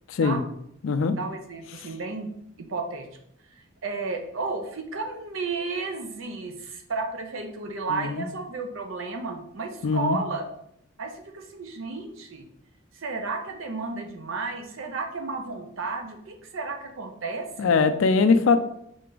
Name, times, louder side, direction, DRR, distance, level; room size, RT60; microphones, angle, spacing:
voice 1, 0.1-0.4 0.8-1.2 1.7-1.9 7.9-8.3 9.8-10.2 17.6-18.6, left 4 dB, 75° left, 9 dB, 0.4 m, -22 dB
voice 2, 1.2-2.3 2.6-3.1 3.8-10.4 11.0-12.4 12.9-17.7, right 3 dB, 80° right, 4 dB, 0.6 m, -33 dB
3.9 x 3.3 x 3.8 m, 0.74 s
head